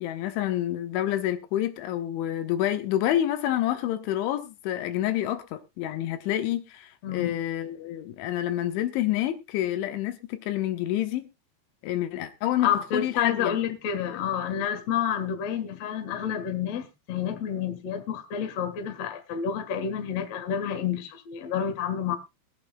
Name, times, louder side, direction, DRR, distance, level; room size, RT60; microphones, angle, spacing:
voice 1, 0.0-11.3 11.8-13.6 13.9-14.2, left 12 dB, 85° left, 3.5 m, -28 dB
voice 2, 7.0-7.3 12.6-22.2, left 8 dB, 60° left, 1.7 m, -29 dB
23.0 x 8.4 x 2.3 m
omnidirectional pair, 5.3 m